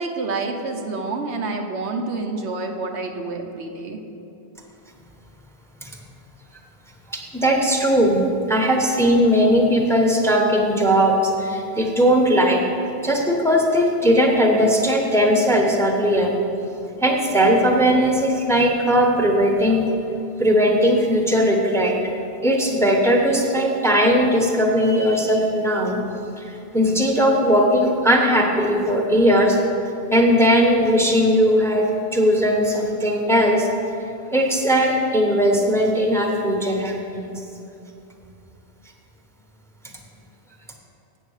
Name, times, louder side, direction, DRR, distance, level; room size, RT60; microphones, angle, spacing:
voice 1, 0.0-4.0, right 3 dB, 80° right, 3 dB, 1.1 m, -28 dB
voice 2, 7.1-8.2 8.5-12.6 13.0-16.3 17.0-19.9 20.4-21.9 22.4-26.0 26.4-29.6 30.1-33.7 34.3-37.3, equal, 5° left, 1 dB, 0.9 m, -18 dB
8.0 x 7.3 x 6.4 m, 2.8 s
omnidirectional pair, 1.1 m